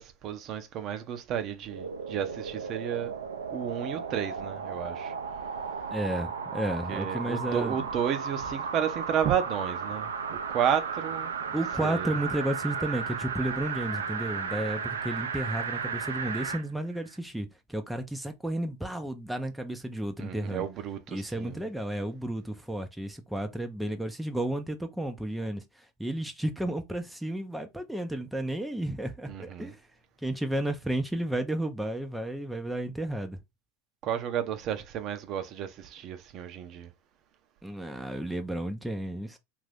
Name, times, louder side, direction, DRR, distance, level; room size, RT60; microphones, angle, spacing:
voice 1, 0.0-3.2 3.5-5.1 6.9-11.6 11.8-12.1 20.2-21.6 29.3-29.7 34.0-36.9, right 9 dB, 45° right, 0.6 m, -32 dB
sound 1, 1.7-16.6 17.1-17.2, right 5 dB, 90° right, 0.5 m, -34 dB
voice 2, 5.9-7.8 11.5-20.6 21.1-29.8 30.2-33.4 37.6-39.4, right 1 dB, 5° right, 0.5 m, -32 dB
2.6 x 2.5 x 3.3 m
hypercardioid pair, 95°, 0 cm